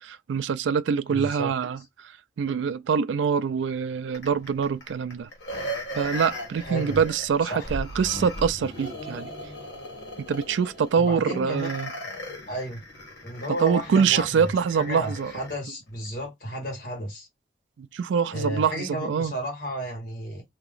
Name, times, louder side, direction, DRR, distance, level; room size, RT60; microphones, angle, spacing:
voice 1, 0.0-1.8 2.4-5.3 5.9-9.3 10.3-11.9 13.6-15.3 17.8-19.3, right 6 dB, 90° right, 0.3 m, -25 dB
voice 2, 1.1-1.5 6.6-7.0 7.5-7.7 11.0-11.7 12.5-12.8 13.2-14.5 14.7-17.3 18.3-20.4, right 1 dB, 50° left, 2.0 m, -32 dB
sound 1, 4.1-15.6 16.0-16.1, equal, 75° left, 1.6 m, -38 dB
2.9 x 2.9 x 3.8 m
head